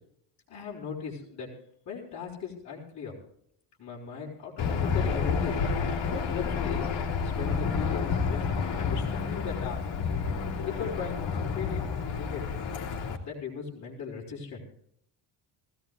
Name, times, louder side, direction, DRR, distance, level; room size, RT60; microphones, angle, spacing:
voice 1, 0.5-1.5 1.9-3.1 3.8-5.5 6.1-6.9 7.2-9.8 10.6-12.6 13.2-14.6, left 6 dB, 35° left, -6 dB, 4.3 m, -38 dB
Aircraft / Engine, 4.6-13.2, left 5 dB, 65° left, 2.5 m, -30 dB
20.0 x 16.0 x 2.5 m, 0.68 s
cardioid pair, 170°, 46 cm